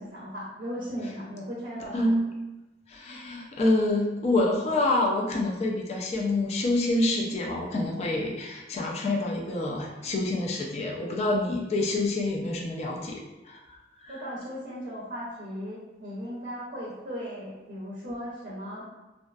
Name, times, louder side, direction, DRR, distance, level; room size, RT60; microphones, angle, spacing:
voice 1, 0.0-2.2 14.1-18.8, equal, 45° right, -7 dB, 0.5 m, -37 dB
voice 2, 1.9-2.3 2.9-13.2 13.5-13.8 14.0-14.1, left 2 dB, 35° left, -1 dB, 0.3 m, -27 dB
2.5 x 2.3 x 2.2 m, 1.1 s
head